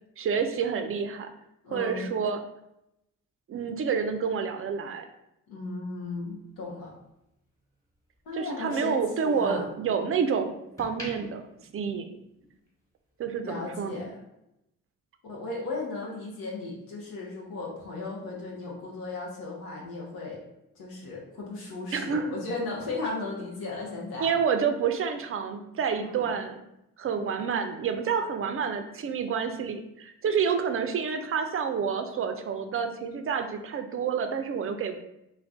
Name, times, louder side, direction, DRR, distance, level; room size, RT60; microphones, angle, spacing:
voice 1, 0.2-1.3 1.7-2.4 3.5-5.1 8.3-11.4 11.7-12.1 13.2-14.0 21.9-22.3 24.2-26.6 27.0-35.0, right 6 dB, 35° right, 7 dB, 0.5 m, -28 dB
voice 2, 1.6-2.1 5.5-6.9 8.2-9.7 13.4-14.2 15.2-20.4 20.7-24.3 25.9-26.3, left 3 dB, 75° left, -4 dB, 0.8 m, -36 dB
sound 1, 5.9-8.3 8.7-10.1 10.5-12.7 13.0-13.2, equal, 10° left, 1.3 m, -46 dB
2.4 x 2.2 x 3.4 m, 0.84 s
supercardioid pair, 45°, 37 cm